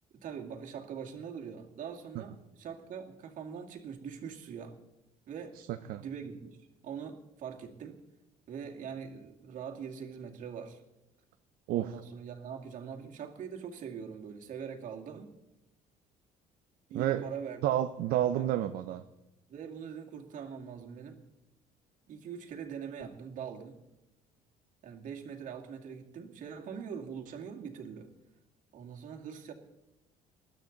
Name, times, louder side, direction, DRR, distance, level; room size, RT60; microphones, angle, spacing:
voice 1, 0.2-4.8 5.3-5.6 6.0-6.6 6.8-8.0 8.5-10.8 11.7-15.3 16.9-17.6 18.3-18.5 19.5-21.2 22.1-23.8 24.8-28.1 28.7-29.5, right 7 dB, 60° right, 1 dB, 2.3 m, -42 dB
voice 2, 5.7-6.0 11.7-11.9 16.9-17.2 17.6-19.0, right 12 dB, 75° right, 8 dB, 0.7 m, -30 dB
20.5 x 12.5 x 4.0 m, 0.94 s
cardioid pair, 130°, 15 cm